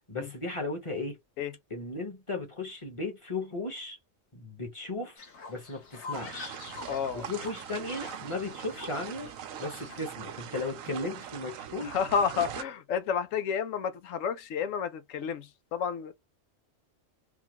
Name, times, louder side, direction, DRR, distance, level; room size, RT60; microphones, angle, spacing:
voice 1, 0.1-1.2 1.7-4.0 4.3-5.2 5.5-6.5 7.1-9.3 9.6-11.9, left 2 dB, 25° left, 1.1 m, -36 dB
Fowl, 5.2-10.2, left 4 dB, 60° left, 1.4 m, -46 dB
sound 1, 6.1-12.6, right 9 dB, 90° right, 1.0 m, -42 dB
voice 2, 6.9-7.3 11.8-16.1, left 7 dB, 85° left, 1.0 m, -31 dB
3.6 x 2.3 x 2.9 m
omnidirectional pair, 1.3 m